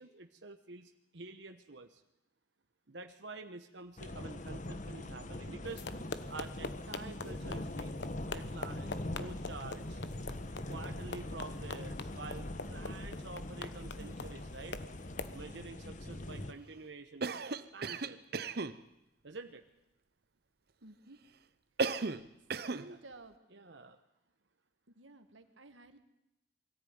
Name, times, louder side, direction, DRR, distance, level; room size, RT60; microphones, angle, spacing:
voice 1, 0.0-2.0 2.9-5.8 6.3-7.9 8.3-10.0 10.7-14.8 15.3-18.2 19.2-19.6 22.9-23.0 23.5-24.0, right 3 dB, 70° right, 6 dB, 1.1 m, -48 dB
sound 1, 4.0-16.5, left 1 dB, 40° left, 1.1 m, -42 dB
sound 2, 5.7-15.4, left 3 dB, 65° left, 1.1 m, -45 dB
Cough, 17.2-18.8 21.8-22.3 22.5-22.9, right 4 dB, 55° right, 0.8 m, -35 dB
voice 2, 20.8-21.2 22.7-23.4 25.0-26.0, right 2 dB, 85° right, 8 dB, 1.9 m, -53 dB
22.5 x 14.0 x 9.5 m, 0.88 s
head